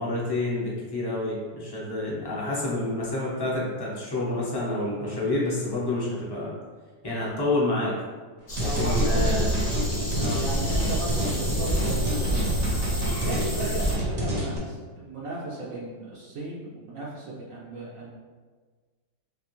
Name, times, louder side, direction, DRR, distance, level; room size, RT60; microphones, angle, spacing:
voice 1, 0.0-6.5 7.0-7.9 8.6-9.5 10.1-10.4, left 2 dB, 25° left, -7 dB, 0.5 m, -28 dB
sound 1, 8.5-13.9, equal, 45° left, 0.8 m, -30 dB
voice 2, 8.6-9.5 10.4-18.1, right 2 dB, 65° right, -6 dB, 1.0 m, -36 dB
sound 2, 8.6-14.6, equal, 85° right, 0.3 m, -27 dB
3.4 x 2.9 x 2.9 m, 1.4 s
omnidirectional pair, 1.7 m